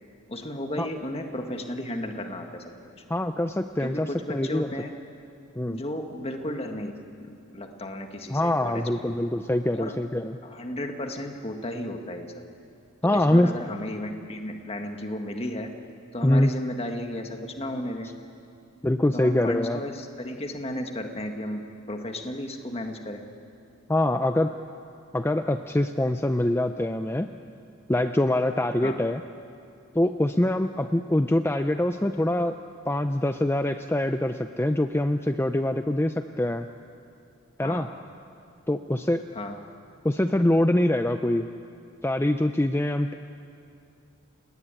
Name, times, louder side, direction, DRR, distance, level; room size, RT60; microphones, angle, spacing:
voice 1, 0.3-2.7 3.8-4.9 5.7-6.9 7.2-9.1 9.7-9.9 10.4-12.4 13.0-15.8 16.1-18.1 19.1-23.2 28.8-29.0 37.6-37.9 39.3-39.6, left 1 dB, 30° left, 4 dB, 1.7 m, -34 dB
voice 2, 3.1-4.7 5.6-5.8 8.3-10.4 13.0-13.5 16.2-16.5 18.8-19.8 23.9-24.5 25.1-27.3 27.9-29.2 29.9-32.6 32.9-36.7 37.6-37.9 38.7-39.2 40.0-41.5 42.0-43.1, left 1 dB, 10° left, 8 dB, 0.5 m, -24 dB
30.0 x 20.0 x 9.0 m, 2.5 s
head